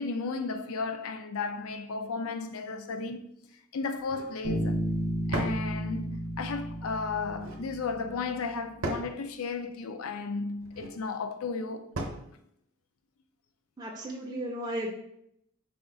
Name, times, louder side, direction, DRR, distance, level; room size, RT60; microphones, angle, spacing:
voice 1, 0.0-3.2 3.7-4.8 5.3-11.9, left 4 dB, 75° left, 0.4 m, -34 dB
sound 1, 4.0-4.4 5.3-5.7 7.2-7.6 8.8-9.2 10.6-11.0 11.9-12.3, right 2 dB, 65° right, 0.7 m, -36 dB
Bass guitar, 4.4-8.1, equal, 45° left, 0.7 m, -33 dB
voice 2, 13.8-14.9, right 1 dB, 20° right, 0.4 m, -34 dB
4.9 x 2.4 x 3.8 m
head